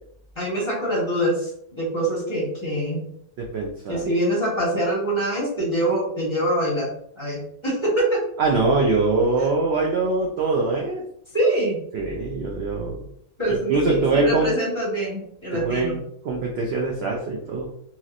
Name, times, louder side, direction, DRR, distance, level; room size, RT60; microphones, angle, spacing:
voice 1, 0.3-1.5 1.8-3.1 3.9-6.9 7.2-8.2 11.3-11.8 13.4-16.0, right 1 dB, 20° left, -7 dB, 1.1 m, -24 dB
voice 2, 3.4-4.0 8.4-11.0 11.9-13.0 13.7-14.5 15.5-16.0 16.2-17.7, right 3 dB, 65° right, -1 dB, 0.6 m, -23 dB
2.9 x 2.8 x 2.5 m, 0.69 s
omnidirectional pair, 1.5 m